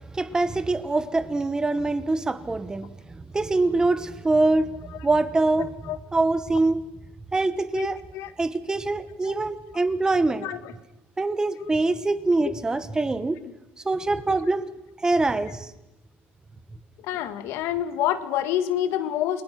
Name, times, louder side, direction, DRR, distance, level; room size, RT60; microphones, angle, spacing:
voice 1, 0.1-2.9 3.3-5.7 6.1-6.8 7.3-8.0 8.4-10.5 11.2-13.4 13.8-14.7 15.0-15.6, right 2 dB, 15° right, 1.3 m, -24 dB
voice 2, 17.0-19.4, left 11 dB, 70° left, 1.9 m, -27 dB
29.0 x 21.5 x 6.0 m
cardioid pair, 120°, 5 cm